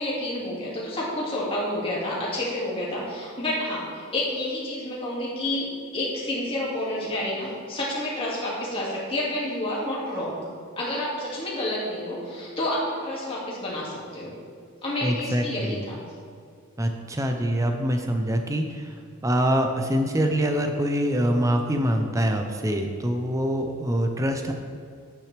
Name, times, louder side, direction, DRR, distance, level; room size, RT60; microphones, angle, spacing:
voice 1, 0.0-5.7 5.9-10.4 10.8-14.4 14.8-16.0, left 1 dB, 25° left, -6 dB, 2.2 m, -29 dB
voice 2, 15.0-15.8 16.8-24.5, equal, 15° right, 4 dB, 0.6 m, -25 dB
10.0 x 9.1 x 3.4 m, 2.2 s
head